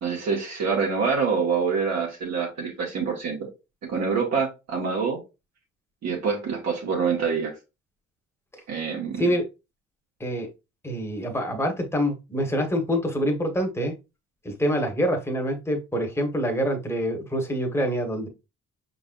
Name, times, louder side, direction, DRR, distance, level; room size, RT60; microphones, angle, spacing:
voice 1, 0.0-3.5 3.9-5.2 6.0-7.5 8.7-9.2, right 5 dB, 60° right, 1.7 m, -26 dB
voice 2, 10.8-13.9 14.4-18.3, equal, 10° left, 1.3 m, -26 dB
5.2 x 3.9 x 2.5 m
cardioid pair, 90°, 30 cm